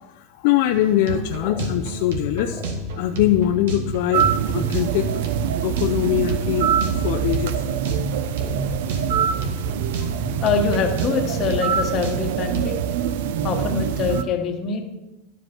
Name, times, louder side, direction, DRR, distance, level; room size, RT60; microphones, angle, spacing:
voice 1, 0.0-5.2 5.6-6.7 7.0-7.6, left 11 dB, 50° left, 6 dB, 0.4 m, -22 dB
sound 1, 0.7-12.7, right 3 dB, 85° right, 1.7 m, -32 dB
sound 2, 1.4-3.2 3.5-5.0 5.8-5.9 6.1-6.4 6.7-7.2 7.4-7.7 8.4-9.3 9.6-10.5 10.8-10.9 11.3-11.6 12.0-12.4, left 1 dB, ahead, 1.0 m, -43 dB
sound 3, 4.1-14.2, right 8 dB, 65° right, 0.5 m, -24 dB
voice 2, 10.2-12.8 13.4-14.8, left 5 dB, 25° left, 3 dB, 1.1 m, -24 dB
12.0 x 5.2 x 5.8 m, 1.0 s
supercardioid pair, 180°, 0 cm